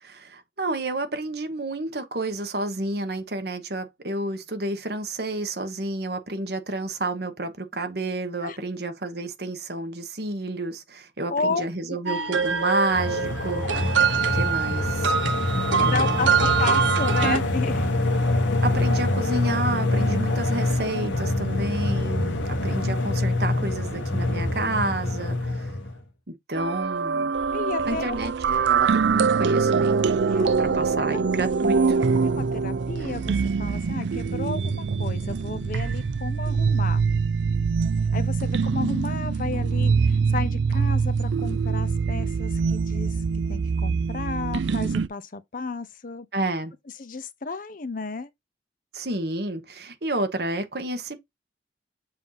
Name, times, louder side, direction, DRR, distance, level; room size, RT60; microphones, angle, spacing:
voice 1, 0.0-14.0 14.3-15.1 15.5-16.5 18.6-25.7 26.3-27.3 27.9-30.0 30.6-32.0 46.3-46.7 48.9-51.2, right 2 dB, 55° right, 1.2 m, -30 dB
voice 2, 11.3-11.7 15.8-17.9 27.5-28.3 30.3-31.2 32.2-37.0 38.1-43.1 43.5-46.3 47.0-48.3, left 4 dB, 45° left, 0.7 m, -32 dB
sound 1, 12.1-17.4, right 6 dB, 90° right, 1.1 m, -24 dB
sound 2, 12.9-26.0, left 2 dB, 85° left, 1.2 m, -25 dB
sound 3, 26.5-45.1, right 5 dB, 75° right, 0.5 m, -24 dB
7.2 x 2.7 x 5.7 m
head